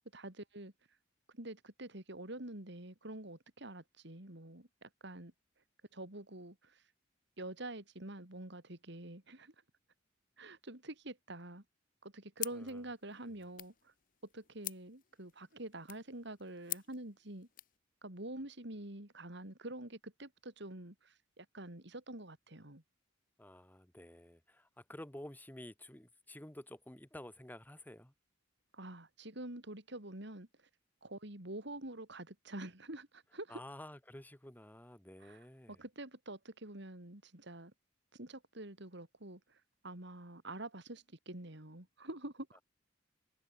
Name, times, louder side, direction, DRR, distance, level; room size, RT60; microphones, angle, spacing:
voice 1, 0.1-0.7 1.3-5.3 5.9-6.8 7.4-9.5 10.4-11.6 12.0-13.9 14.3-17.5 18.0-22.8 28.7-30.5 31.0-33.6 35.2-37.7 38.1-39.6 39.8-42.6, right 1 dB, 65° right, 3.8 m, -47 dB
sound 1, 12.4-17.8, left 14 dB, 45° left, 1.1 m, -48 dB
voice 2, 23.4-28.1 33.5-35.8 42.5-42.6, left 1 dB, 10° left, 1.6 m, -51 dB
head